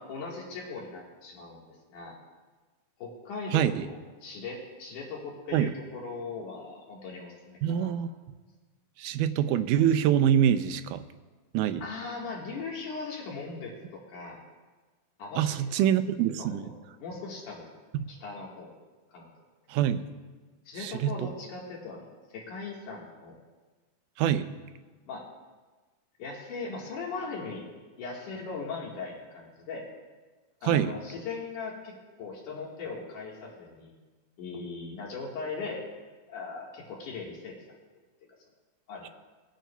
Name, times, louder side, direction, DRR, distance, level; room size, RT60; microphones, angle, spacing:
voice 1, 0.0-2.2 3.0-7.9 11.8-14.4 15.2-15.6 16.4-17.7 18.1-18.8 19.1-19.3 20.7-23.4 25.1-25.2 26.2-27.6 28.0-29.8 30.6-33.9 34.4-35.8 36.3-37.5 38.9-39.1, left 4 dB, 75° left, -3 dB, 3.1 m, -39 dB
voice 2, 3.5-3.9 5.5-5.7 7.6-8.1 9.0-11.0 11.5-11.8 15.4-16.7 17.9-18.0 19.7-20.1 20.8-21.3 24.2-24.6 30.7-30.9, right 10 dB, 85° right, 10 dB, 2.0 m, -25 dB
20.5 x 9.0 x 2.3 m, 1.3 s
omnidirectional pair, 3.6 m